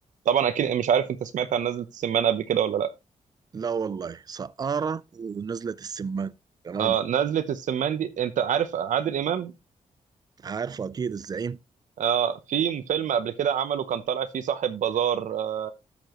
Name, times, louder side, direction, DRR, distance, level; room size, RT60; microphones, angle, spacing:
voice 1, 0.3-2.9 6.8-9.5 12.0-15.7, right 9 dB, 85° right, 0.8 m, -25 dB
voice 2, 3.5-6.3 6.6-7.0 10.4-11.6, right 6 dB, 30° right, 0.4 m, -31 dB
13.0 x 7.0 x 3.0 m
wide cardioid pair, 165°, 13 cm